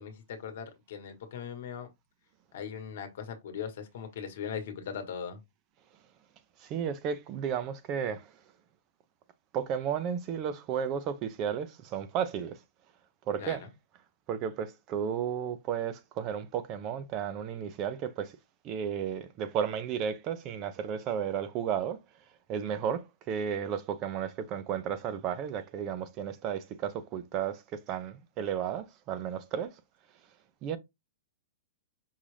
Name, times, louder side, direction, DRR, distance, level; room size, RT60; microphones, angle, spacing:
voice 1, 0.0-1.9 2.5-5.4 13.4-13.7, left 7 dB, 55° left, 1.2 m, -39 dB
voice 2, 6.6-8.3 9.5-12.6 13.3-13.6 14.3-18.3 18.6-22.0 22.5-29.7 30.6-30.8, right 8 dB, 25° right, 0.5 m, -33 dB
5.5 x 2.4 x 3.2 m
supercardioid pair, 175°, 0 cm